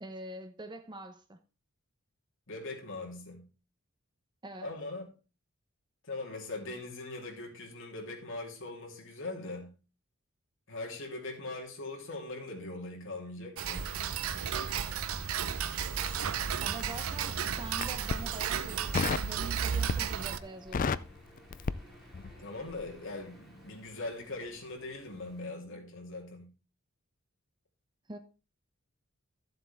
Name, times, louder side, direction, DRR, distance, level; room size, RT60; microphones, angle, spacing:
voice 1, 0.0-1.4 4.4-4.7 16.6-21.0 28.1-28.2, right 1 dB, 20° right, 0.7 m, -44 dB
voice 2, 2.5-3.4 4.6-5.0 6.0-9.7 10.7-13.9 22.4-26.5, left 2 dB, 60° left, 3.4 m, -41 dB
Tick-tock, 13.6-20.4, right 7 dB, 75° right, 0.7 m, -33 dB
Crackle, 16.0-17.1 17.7-18.3 18.9-19.3 19.7-20.2 20.5-22.4 22.7-22.9, left 5 dB, 40° left, 0.4 m, -32 dB
sound 1, 17.8-25.5, right 1 dB, ahead, 3.6 m, -58 dB
13.5 x 7.6 x 3.5 m
head